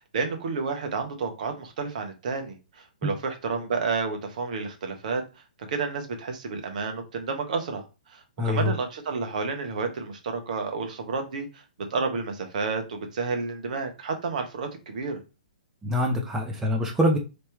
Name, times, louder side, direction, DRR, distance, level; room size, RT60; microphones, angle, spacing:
voice 1, 0.0-5.2 5.7-11.6 11.9-15.2, right 4 dB, 60° right, 5 dB, 1.1 m, -30 dB
voice 2, 8.4-8.7 15.8-17.2, left 1 dB, 10° right, 1 dB, 0.7 m, -24 dB
3.3 x 2.9 x 3.4 m, 0.28 s
figure-of-eight pair, 125°, 5 cm